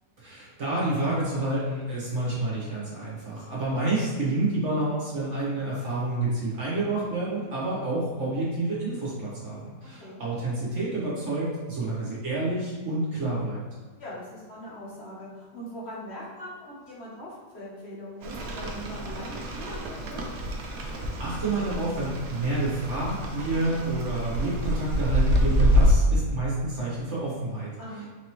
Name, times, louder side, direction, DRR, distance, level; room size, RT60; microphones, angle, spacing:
voice 1, 0.2-13.6 20.9-27.7, right 2 dB, 55° right, -7 dB, 1.5 m, -29 dB
voice 2, 14.0-17.3 17.5-20.2 27.8-28.0, equal, 50° left, -7 dB, 1.1 m, -41 dB
Rain, 18.2-26.0, equal, 80° right, 1.1 m, -27 dB
4.2 x 3.0 x 3.0 m, 1.4 s
omnidirectional pair, 1.5 m